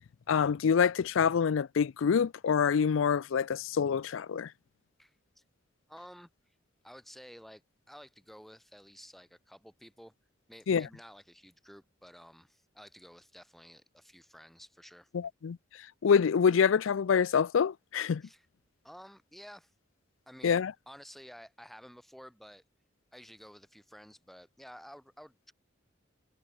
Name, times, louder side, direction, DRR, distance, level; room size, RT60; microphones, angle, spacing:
voice 1, 0.3-4.5 10.7-10.9 15.1-15.6 16.0-18.2 20.4-20.7, left 6 dB, 80° left, 0.4 m, -26 dB
voice 2, 5.0-5.4 5.9-6.5 6.8-7.6 7.9-10.1 10.5-15.1 18.2-18.5 18.8-19.7 20.3-22.6 23.1-25.5, equal, ahead, 4.6 m, -52 dB
head